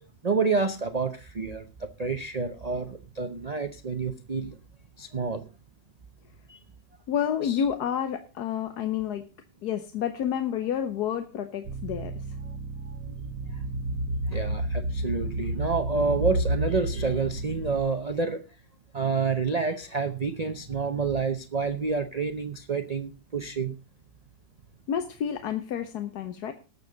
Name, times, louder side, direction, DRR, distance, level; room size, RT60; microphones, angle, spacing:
voice 1, 0.2-4.5 5.0-5.4 6.5-6.6 7.4-7.6 13.1-13.2 14.3-18.4 18.9-23.8, right 4 dB, 45° right, 7 dB, 0.5 m, -28 dB
voice 2, 7.1-9.2 9.6-12.4 24.9-26.5, left 9 dB, 70° left, 8 dB, 1.3 m, -29 dB
sound 1, 11.6-17.8, right 1 dB, 70° right, 1.5 m, -31 dB
19.0 x 7.1 x 3.9 m, 0.31 s
omnidirectional pair, 1.9 m